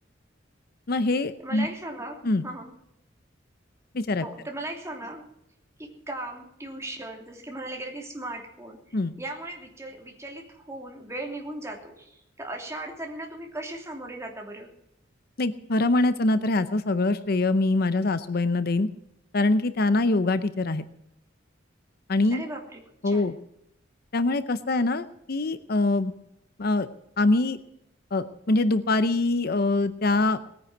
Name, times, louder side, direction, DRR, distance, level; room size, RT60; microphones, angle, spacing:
voice 1, 0.9-1.7 2.2-2.4 3.9-4.3 8.9-9.1 15.4-18.9 19.3-20.8 22.1-22.4 23.0-23.4 24.1-26.1 26.6-26.9 27.2-27.6 28.1-30.4, left 2 dB, 55° left, 13 dB, 0.7 m, -24 dB
voice 2, 1.4-2.7 4.2-5.2 5.8-14.7 22.3-23.3, right 1 dB, 15° right, 1 dB, 2.9 m, -38 dB
20.0 x 9.7 x 6.1 m, 0.80 s
head